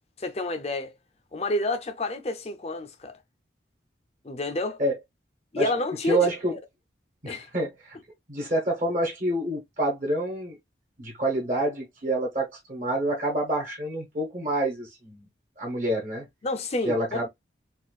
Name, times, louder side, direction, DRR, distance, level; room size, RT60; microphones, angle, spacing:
voice 1, 0.2-0.9 1.3-3.1 4.2-4.8 5.5-6.6 7.3-7.5 16.4-17.3, left 2 dB, 35° left, 0.6 m, -29 dB
voice 2, 6.0-6.5 7.2-8.0 8.3-10.6 11.0-15.2 15.6-16.2 16.8-17.3, right 1 dB, 45° right, 1.2 m, -27 dB
4.3 x 2.5 x 2.3 m
head